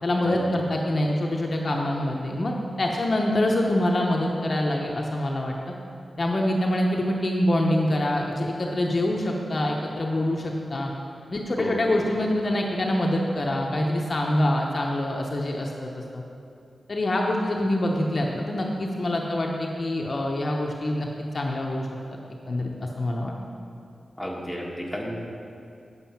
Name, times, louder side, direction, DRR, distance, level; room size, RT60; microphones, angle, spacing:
voice 1, 0.0-5.5 6.2-10.9 11.3-16.2 16.9-21.1 21.3-21.9 22.5-23.3, left 1 dB, 45° left, -1 dB, 0.8 m, -25 dB
voice 2, 11.6-12.0 24.2-25.2, equal, ahead, -3 dB, 1.6 m, -32 dB
7.9 x 7.4 x 5.8 m, 2.5 s
wide cardioid pair, 100°, 0 cm